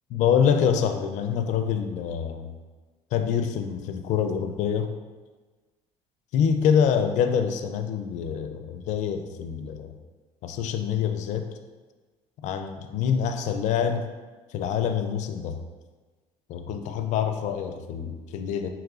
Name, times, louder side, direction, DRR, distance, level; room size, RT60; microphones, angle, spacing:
voice 1, 0.1-2.5 3.1-4.9 6.3-9.9 10.4-11.5 12.4-14.1 14.5-15.6 16.5-18.7, left 7 dB, 65° left, 7 dB, 0.4 m, -26 dB
4.9 x 3.0 x 2.4 m, 1.3 s
cardioid pair, 105°, 13 cm